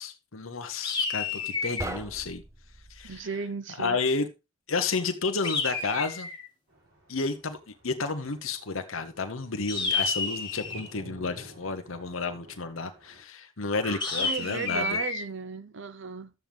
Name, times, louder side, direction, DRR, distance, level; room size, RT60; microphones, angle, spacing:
voice 1, 0.0-2.4 2.9-3.4 3.8-4.3 4.7-6.3 7.1-7.6 7.8-15.0, left 4 dB, 70° left, 1.1 m, -31 dB
sound 1, 0.8-2.0 5.4-6.5 9.7-10.9 14.0-15.2, left 4 dB, 20° left, 2.4 m, -30 dB
sound 2, 1.8-3.3, right 1 dB, 15° right, 0.7 m, -39 dB
voice 2, 3.0-4.0 13.8-16.3, right 5 dB, 55° right, 0.7 m, -36 dB
sound 3, 6.7-13.2, equal, 75° right, 6.5 m, -51 dB
12.0 x 7.5 x 3.5 m
head